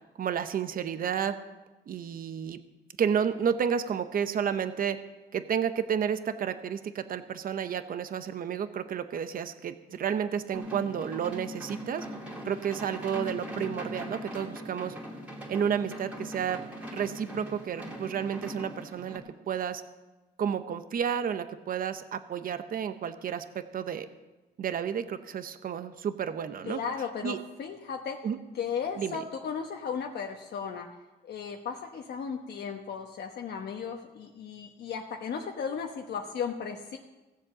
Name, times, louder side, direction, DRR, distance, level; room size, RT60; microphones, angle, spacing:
voice 1, 0.2-1.4 1.9-2.6 3.0-5.0 5.3-12.1 12.4-14.9 15.5-16.6 16.9-19.8 20.4-24.1 24.6-26.8 27.2-27.4 28.2-28.4 29.0-29.2, right 8 dB, 50° right, 10 dB, 0.8 m, -31 dB
sound 1, 10.5-19.2, equal, 5° right, 2.7 m, -40 dB
voice 2, 26.7-28.3 28.5-30.9 31.2-37.0, left 6 dB, 65° left, 2 dB, 1.1 m, -35 dB
17.0 x 7.5 x 7.3 m, 1.1 s
cardioid pair, 135°, 19 cm